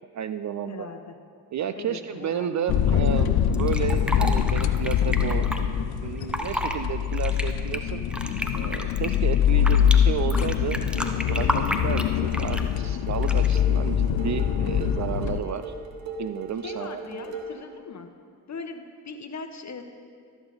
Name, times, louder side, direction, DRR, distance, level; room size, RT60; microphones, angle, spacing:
voice 1, 0.1-0.9 1.5-5.5 6.0-8.0 8.5-15.7 16.2-17.3, right 9 dB, 40° right, 11 dB, 0.4 m, -32 dB
voice 2, 0.7-1.1 1.8-2.5 15.4-15.7 16.6-18.1 18.5-19.8, left 4 dB, 35° left, 7 dB, 1.0 m, -39 dB
sound 1, 2.7-15.4, left 9 dB, 55° left, 0.6 m, -24 dB
Fill (with liquid), 3.5-5.6 6.2-6.8 7.1-10.0 10.3-12.7 13.2-13.6, equal, ahead, 0.8 m, -31 dB
sound 2, 10.7-17.7, right 3 dB, 75° right, 1.3 m, -41 dB
13.0 x 7.0 x 4.0 m, 2.3 s
hypercardioid pair, 50°, 45 cm